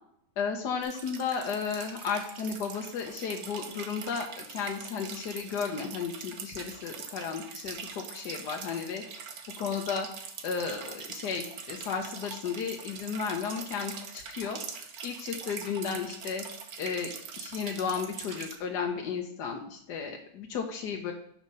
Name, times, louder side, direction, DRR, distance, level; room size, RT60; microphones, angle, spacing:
voice 1, 0.4-9.0 9.6-10.1 10.4-14.6 15.0-16.4 16.8-21.1, left 6 dB, 80° left, 2 dB, 1.6 m, -34 dB
sound 1, 0.8-18.6, right 6 dB, 65° right, 1.3 m, -43 dB
7.3 x 6.0 x 5.4 m, 0.68 s
omnidirectional pair, 1.8 m